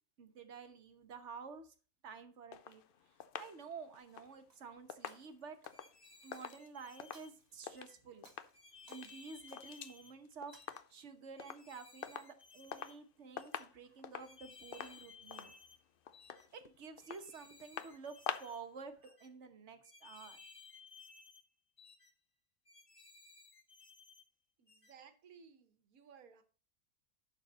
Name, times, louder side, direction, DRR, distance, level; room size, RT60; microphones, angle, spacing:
voice 1, 0.2-1.7 2.0-2.8 3.4-5.6 6.2-8.3 8.7-15.5 16.5-20.4, right 5 dB, 55° right, 8 dB, 1.3 m, -51 dB
sound 1, 2.5-7.9 8.2-8.6 8.8-10.0 10.2-11.1 11.4-11.7 12.0-13.0 13.3-18.7 19.0-19.1, left 9 dB, 65° left, 0.5 m, -47 dB
Shatter, 4.0-4.6 5.1-6.7 7.1-7.8 8.1-9.9 10.3-10.6, right 3 dB, 30° right, 1.4 m, -65 dB
sound 2, 5.7-7.3 7.7-8.0 8.5-10.1 10.5-10.8 11.4-13.0 13.4-13.6 14.2-15.8 16.1-16.5 17.0-18.6 19.0-19.3 19.8-21.4 21.8-22.1 22.6-24.2 24.7-24.9, left 4 dB, 30° left, 0.8 m, -59 dB
voice 2, 24.6-26.4, right 6 dB, 80° right, 8 dB, 1.6 m, -59 dB
11.5 x 4.6 x 4.0 m, 0.36 s
omnidirectional pair, 1.5 m